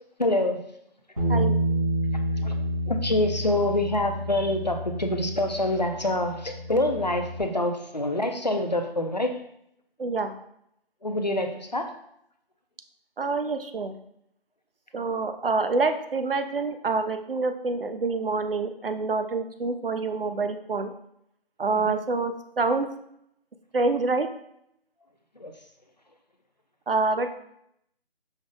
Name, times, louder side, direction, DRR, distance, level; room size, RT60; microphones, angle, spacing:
voice 1, 0.2-0.6 1.3-1.4 2.4-2.6 2.9-9.3 11.0-11.9 21.7-22.0 25.4-25.5, left 1 dB, 45° left, 5 dB, 0.4 m, -26 dB
Bass guitar, 1.2-7.4, equal, 35° right, 1.0 m, -29 dB
voice 2, 10.0-10.4 13.2-13.9 14.9-20.9 21.6-22.9 23.7-24.3 26.9-27.3, right 3 dB, 65° right, 8 dB, 0.5 m, -26 dB
5.3 x 2.0 x 3.6 m, 0.75 s
figure-of-eight pair, 180°, 31 cm